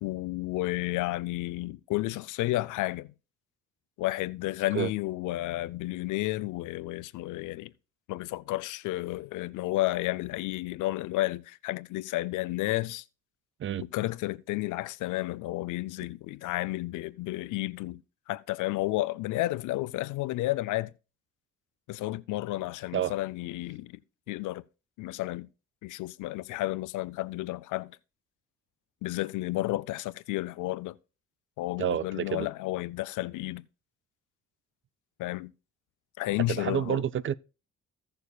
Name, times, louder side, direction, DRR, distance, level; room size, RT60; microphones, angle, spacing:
voice 1, 0.0-3.1 4.0-7.7 8.1-13.0 13.9-18.0 18.3-20.9 21.9-23.9 24.3-24.6 25.0-25.5 25.8-27.9 29.0-31.0 31.6-33.6 35.2-35.5 36.2-37.0, left 17 dB, 90° left, 0.5 m, -32 dB
voice 2, 31.8-32.5 36.5-37.4, right 10 dB, 40° right, 0.4 m, -29 dB
16.5 x 6.9 x 2.3 m
cardioid pair, 90°, 30 cm